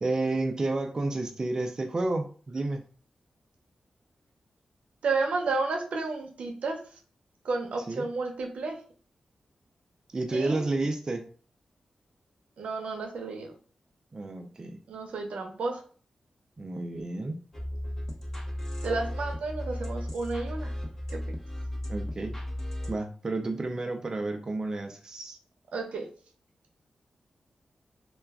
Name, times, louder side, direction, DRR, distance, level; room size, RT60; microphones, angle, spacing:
voice 1, 0.0-2.8 7.9-8.1 10.1-11.3 14.1-14.8 16.6-17.4 21.9-22.3 22.9-25.4, right 2 dB, 30° right, 4 dB, 0.3 m, -31 dB
voice 2, 5.0-6.8 7.4-8.8 10.3-10.6 12.6-13.5 14.9-15.8 18.8-20.7 21.1-21.4 25.7-26.1, right 3 dB, 90° right, 3 dB, 0.6 m, -31 dB
sound 1, 17.5-22.9, left 1 dB, 20° left, 0.6 m, -35 dB
2.3 x 2.2 x 3.4 m, 0.42 s
wide cardioid pair, 120°, 2 cm